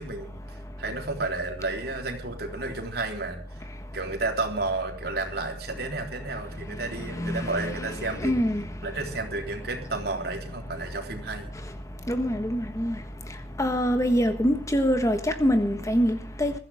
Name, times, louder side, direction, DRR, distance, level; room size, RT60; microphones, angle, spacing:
voice 1, 0.0-3.7 3.9-8.3 8.8-11.5, right 3 dB, 60° right, 3.7 m, -32 dB
voice 2, 8.2-8.6 12.1-13.0 13.6-16.5, equal, 20° left, 1.4 m, -24 dB
22.0 x 14.5 x 3.5 m
head